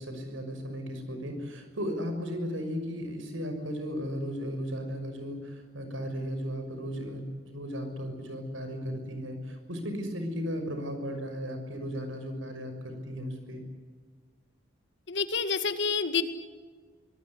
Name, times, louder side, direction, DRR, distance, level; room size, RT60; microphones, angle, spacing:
voice 1, 0.0-13.6, equal, 85° right, 7 dB, 6.1 m, -35 dB
voice 2, 15.1-16.2, left 5 dB, 65° left, 10 dB, 2.0 m, -28 dB
24.5 x 19.5 x 9.9 m, 1.5 s
head